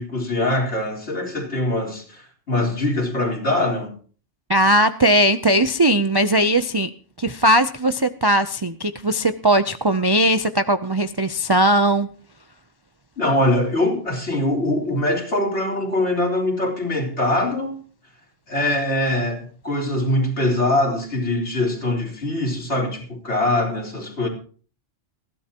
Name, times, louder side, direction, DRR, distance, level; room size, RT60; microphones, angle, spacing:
voice 1, 0.0-4.0 13.2-17.8 18.5-24.3, left 1 dB, 65° left, 4.1 m, -23 dB
voice 2, 4.5-6.9 7.2-12.1, right 1 dB, 30° right, 0.4 m, -19 dB
20.5 x 15.5 x 2.9 m
omnidirectional pair, 1.3 m